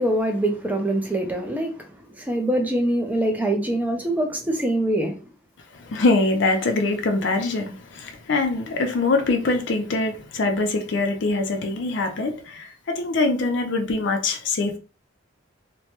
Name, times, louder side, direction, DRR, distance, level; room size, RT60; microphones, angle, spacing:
voice 1, 0.0-1.9 2.2-5.1, right 1 dB, 10° right, 0.5 m, -24 dB
voice 2, 5.7-14.8, left 3 dB, 65° left, 0.5 m, -23 dB
3.1 x 2.2 x 2.8 m
head